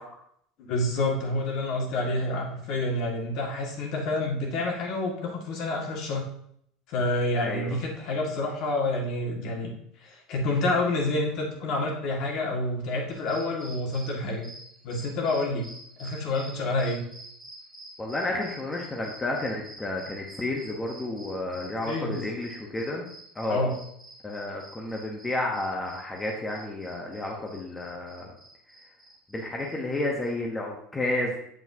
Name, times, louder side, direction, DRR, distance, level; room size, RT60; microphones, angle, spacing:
voice 1, 0.6-6.2 6.9-9.7 10.0-14.5 14.8-15.6 16.0-17.0 21.9-22.2 23.5-23.7, left 2 dB, 50° left, 0 dB, 2.0 m, -28 dB
voice 2, 7.4-7.8 18.0-23.7 24.2-28.3 29.3-31.4, left 2 dB, 10° left, -1 dB, 0.9 m, -31 dB
sound 1, 13.1-30.3, right 1 dB, 10° right, 2.7 m, -48 dB
8.0 x 7.0 x 2.8 m, 0.69 s
supercardioid pair, 150°, 0 cm